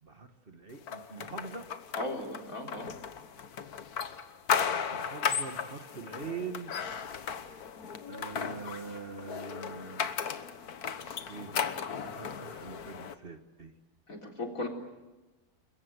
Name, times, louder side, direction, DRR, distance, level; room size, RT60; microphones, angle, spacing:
voice 1, 0.0-1.7 4.9-6.7 8.1-10.2 11.3-13.7, right 4 dB, 40° right, 8 dB, 1.6 m, -43 dB
sound 1, 0.9-13.1, left 7 dB, 80° left, 1.7 m, -35 dB
voice 2, 2.0-2.9 14.1-14.7, left 1 dB, 65° left, 2 dB, 4.3 m, -36 dB
30.0 x 22.0 x 8.1 m, 1.1 s
omnidirectional pair, 1.6 m